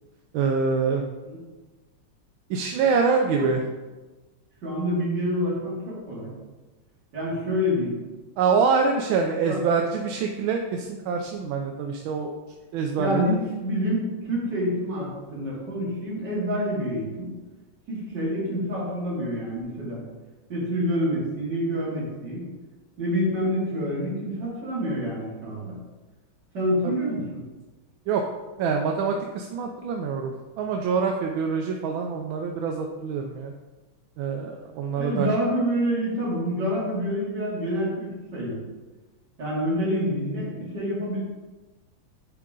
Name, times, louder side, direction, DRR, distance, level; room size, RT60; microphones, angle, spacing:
voice 1, 0.3-1.0 2.5-3.6 8.4-12.3 12.7-13.2 26.8-26.9 28.1-28.2 28.6-33.5 34.2-35.3, right 5 dB, 75° right, 3 dB, 1.3 m, -25 dB
voice 2, 4.6-6.3 7.1-7.9 9.5-9.6 13.0-17.3 17.9-20.0 20.5-22.4 23.0-25.8 26.5-27.4 34.9-38.6 39.4-41.2, equal, 50° right, -7 dB, 3.0 m, -27 dB
9.7 x 3.7 x 3.7 m, 1.2 s
omnidirectional pair, 2.4 m